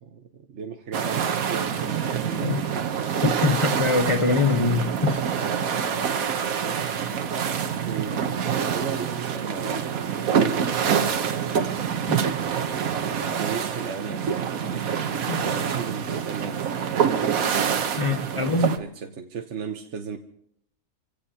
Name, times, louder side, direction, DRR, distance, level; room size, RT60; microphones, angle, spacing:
voice 1, 0.0-2.9 7.9-11.2 12.3-13.1 13.4-17.2 18.3-20.2, right 6 dB, 60° right, 1.2 m, -36 dB
sound 1, 0.9-18.8, right 7 dB, 85° right, 1.4 m, -26 dB
voice 2, 3.2-5.2 12.1-12.2 15.3-15.4 18.0-18.8, left 3 dB, 30° left, 0.8 m, -23 dB
28.0 x 17.0 x 2.8 m
omnidirectional pair, 1.4 m